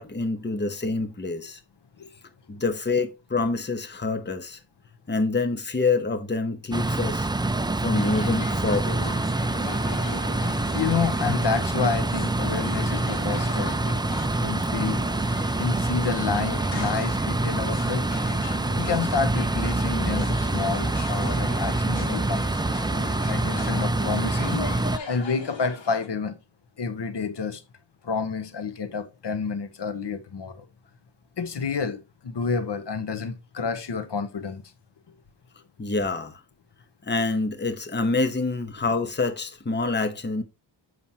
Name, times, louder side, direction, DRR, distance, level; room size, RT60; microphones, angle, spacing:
voice 1, 0.0-1.6 2.5-4.6 5.1-7.3 7.8-9.1 35.8-36.4 37.0-40.4, left 3 dB, 25° left, 0.9 m, -26 dB
sound 1, 6.7-25.0, right 2 dB, 10° right, 0.3 m, -26 dB
sound 2, 7.9-26.1, left 4 dB, 85° left, 1.8 m, -39 dB
voice 2, 10.4-13.7 14.4-15.0 15.6-18.1 18.7-22.8 23.3-24.6 25.1-26.4 26.8-27.6 28.0-30.7 31.4-34.6, left 5 dB, 65° left, 0.9 m, -29 dB
7.3 x 6.0 x 2.8 m
wide cardioid pair, 115°, 44 cm